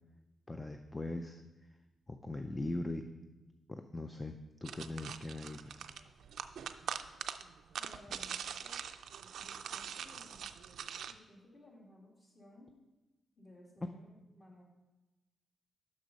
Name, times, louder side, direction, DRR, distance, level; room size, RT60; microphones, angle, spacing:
voice 1, 0.5-1.7 2.1-3.0 3.7-5.9, left 2 dB, 10° left, 7 dB, 0.4 m, -41 dB
sound 1, 4.6-11.1, right 8 dB, 75° right, 0.4 m, -43 dB
voice 2, 7.8-8.8 9.4-10.5 11.1-12.7 13.4-14.6, left 1 dB, 30° left, -3 dB, 2.1 m, -58 dB
6.6 x 6.4 x 5.1 m, 1.1 s
wide cardioid pair, 140°, 0 cm